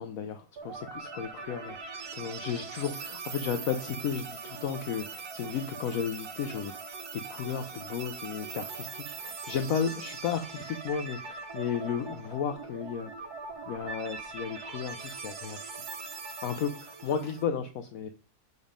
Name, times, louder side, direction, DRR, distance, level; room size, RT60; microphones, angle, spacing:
voice 1, 0.0-6.7 7.1-13.3 13.7-15.7 16.4-18.1, left 7 dB, 70° left, 7 dB, 0.9 m, -34 dB
sound 1, 0.6-17.4, right 4 dB, 70° right, 1.5 m, -41 dB
7.1 x 4.1 x 5.0 m, 0.37 s
omnidirectional pair, 1.7 m